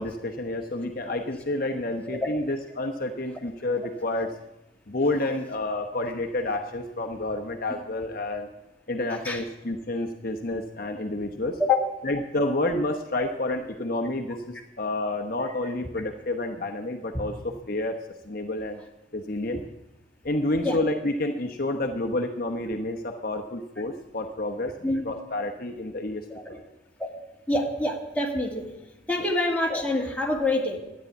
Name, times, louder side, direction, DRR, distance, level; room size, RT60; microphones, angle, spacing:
voice 1, 0.0-4.3 4.9-8.5 8.9-11.6 12.0-18.0 18.2-18.8 19.1-19.6 20.2-26.6, left 2 dB, 45° left, 3 dB, 1.0 m, -29 dB
voice 2, 27.5-28.7 29.1-30.8, left 2 dB, 5° left, -1 dB, 2.0 m, -26 dB
12.5 x 9.7 x 9.2 m, 0.94 s
head